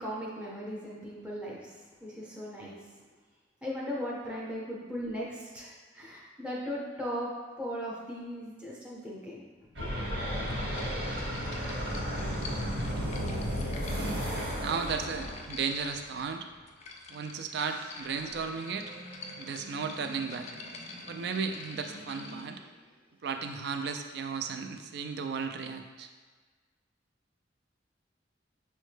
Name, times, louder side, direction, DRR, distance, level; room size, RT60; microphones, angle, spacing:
voice 1, 0.0-1.7 2.0-2.8 3.6-9.4 9.8-9.9, equal, 5° right, -5 dB, 0.6 m, -38 dB
sound 1, 9.8-16.0 17.8-22.7, equal, 75° right, 1.2 m, -36 dB
sound 2, 10.3-22.6, left 4 dB, 35° left, 0.3 m, -48 dB
voice 2, 14.6-16.5 17.1-18.9 19.4-20.5 21.1-22.6 23.2-26.1, right 5 dB, 60° right, 6 dB, 0.3 m, -35 dB
6.2 x 2.1 x 3.2 m, 1.4 s
head